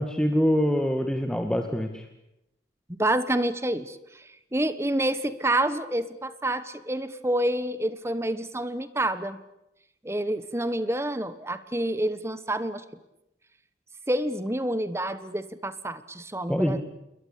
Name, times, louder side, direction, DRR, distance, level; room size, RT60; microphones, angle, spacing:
voice 1, 0.0-2.0 16.5-16.8, equal, 5° left, 5 dB, 1.9 m, -25 dB
voice 2, 3.0-9.4 10.0-12.8 14.1-16.8, right 1 dB, 15° right, 13 dB, 1.4 m, -28 dB
29.0 x 22.5 x 8.6 m, 0.86 s
head